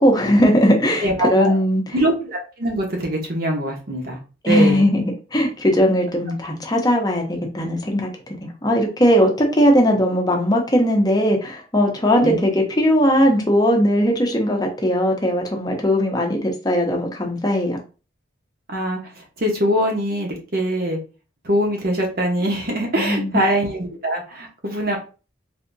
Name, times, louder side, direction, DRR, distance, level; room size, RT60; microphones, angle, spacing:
voice 1, 0.0-1.8 4.4-8.1 8.4-17.8 23.0-23.3, equal, 20° left, 2 dB, 0.7 m, -18 dB
voice 2, 1.0-1.5 1.9-4.2 4.5-4.9 12.2-12.4 18.7-21.0 21.4-25.0, equal, 50° right, 0 dB, 1.0 m, -23 dB
3.4 x 2.7 x 2.6 m, 0.34 s
head